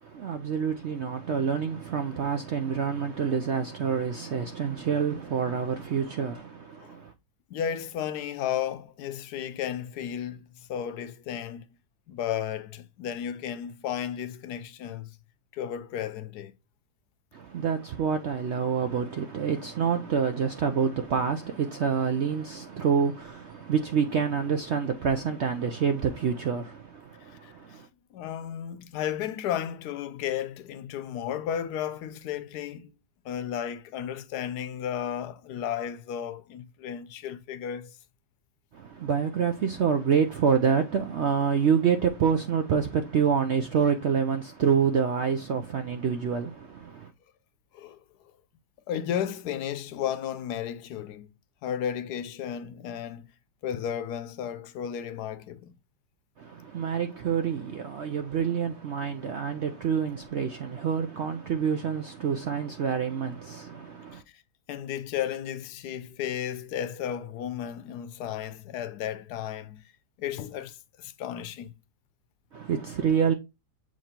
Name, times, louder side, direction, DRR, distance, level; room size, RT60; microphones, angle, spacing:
voice 1, 0.0-7.1 17.3-27.9 38.7-47.1 56.4-64.2 72.5-73.3, right 7 dB, 70° right, 0.6 m, -27 dB
voice 2, 7.5-11.6 12.1-15.1 15.5-16.5 27.4-27.8 28.1-32.9 33.2-38.0 47.7-48.0 48.9-51.3 51.6-53.3 53.6-55.7 64.1-64.2 64.7-69.8 70.2-71.7, left 9 dB, 75° left, 1.1 m, -33 dB
7.3 x 3.0 x 4.2 m
omnidirectional pair, 1.8 m